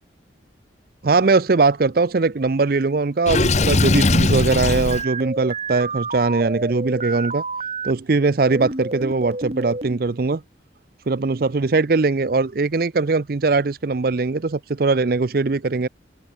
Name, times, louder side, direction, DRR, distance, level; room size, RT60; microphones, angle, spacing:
voice 1, 1.0-7.4 7.8-10.4 11.1-15.9, right 3 dB, 50° right, 0.6 m, -20 dB
Water / Sink (filling or washing), 3.3-5.0, left 2 dB, 40° left, 1.0 m, -19 dB
sound 1, 4.9-7.9 8.4-10.0, right 3 dB, 35° right, 5.8 m, -29 dB
open air
head